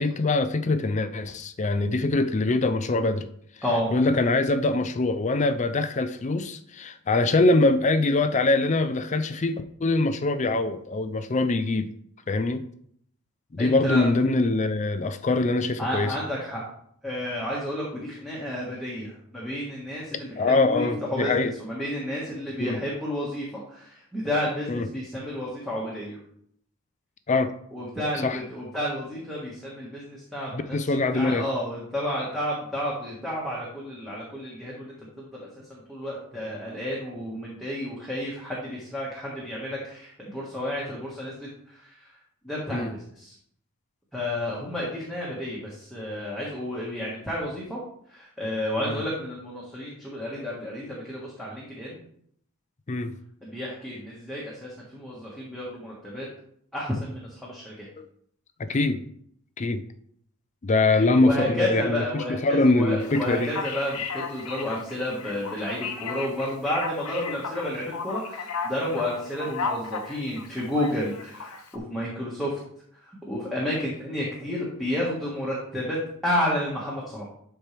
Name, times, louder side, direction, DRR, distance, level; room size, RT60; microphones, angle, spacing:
voice 1, 0.0-3.3 3.9-11.9 12.3-12.6 13.5-16.2 20.4-21.5 22.6-22.8 24.7-24.9 27.3-27.5 28.2-28.4 30.5-31.5 42.7-42.9 48.9-49.0 52.9-53.1 58.0-58.1 58.6-59.0 59.6-59.8 60.6-63.5, left 2 dB, 30° left, 10 dB, 0.4 m, -23 dB
voice 2, 13.6-14.1 15.8-16.6 17.0-26.2 27.7-42.1 42.4-43.4 44.1-47.8 48.1-52.0 53.4-56.3 56.7-57.9 60.9-72.6 73.0-77.2, left 1 dB, ahead, -6 dB, 1.6 m, -31 dB
Male speech man speaking, 63.0-71.8, left 4 dB, 75° left, 0.9 m, -35 dB
12.0 x 4.5 x 3.4 m, 0.67 s
head